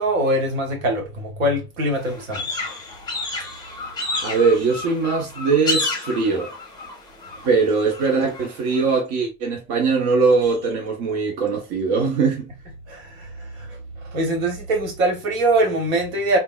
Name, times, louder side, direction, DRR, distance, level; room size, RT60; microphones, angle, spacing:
voice 1, 0.0-2.6 12.9-13.8 14.1-16.4, right 1 dB, 65° right, 1.2 m, -23 dB
sound 1, 1.9-9.0, left 2 dB, 10° left, 0.8 m, -31 dB
voice 2, 4.2-6.5 7.4-12.5, right 4 dB, 50° right, 0.8 m, -21 dB
3.6 x 2.1 x 2.2 m
figure-of-eight pair, 80°, 43 cm